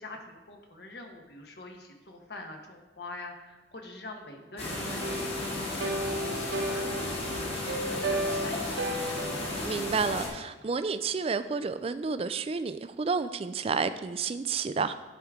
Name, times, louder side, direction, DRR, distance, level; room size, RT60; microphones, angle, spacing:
voice 1, 0.0-8.9, left 2 dB, 60° left, 2 dB, 1.1 m, -45 dB
sound 1, 4.6-10.3, left 2 dB, 30° left, 1.4 m, -35 dB
sound 2, 4.7-9.7, right 1 dB, 75° right, 0.9 m, -34 dB
voice 2, 9.6-14.9, right 5 dB, 30° right, 12 dB, 0.3 m, -30 dB
12.0 x 4.9 x 3.6 m, 1.1 s
head